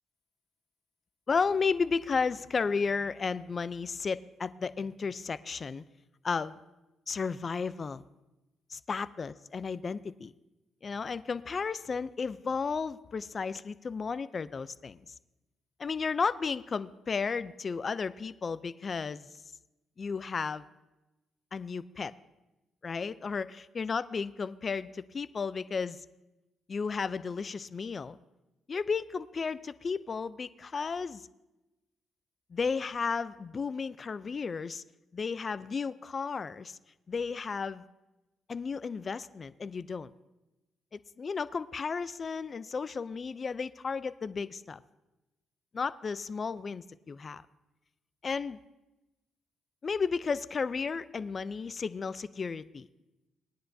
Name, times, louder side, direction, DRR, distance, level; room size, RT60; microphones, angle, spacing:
voice 1, 1.3-5.8 6.2-6.5 7.1-8.0 8.7-10.3 10.8-15.0 15.8-19.3 20.0-20.6 21.5-22.1 22.8-26.1 26.7-28.2 28.7-31.3 32.5-34.8 35.1-36.8 37.1-37.8 38.5-40.1 40.9-44.8 45.7-47.4 48.2-48.6 49.8-52.9, left 5 dB, 40° left, 15 dB, 0.4 m, -33 dB
19.0 x 10.0 x 2.7 m, 1.0 s
cardioid pair, 90°, 0 cm